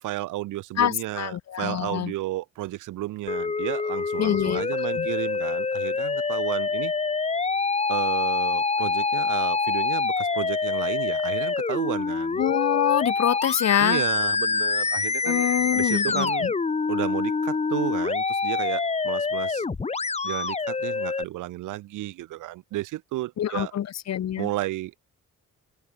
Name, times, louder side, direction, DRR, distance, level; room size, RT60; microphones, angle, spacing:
voice 1, 0.0-6.9 7.9-12.4 13.8-15.5 15.7-16.5 16.9-19.6 20.2-23.7 24.4-25.1, right 16 dB, 90° right, 2.6 m, -32 dB
voice 2, 0.8-2.1 4.2-4.6 5.0-5.1 12.4-14.0 15.2-16.5 23.4-24.5, left 10 dB, 60° left, 1.7 m, -25 dB
Musical instrument, 3.3-21.2, left 4 dB, 20° left, 1.0 m, -26 dB
open air
cardioid pair, 90°, 30 cm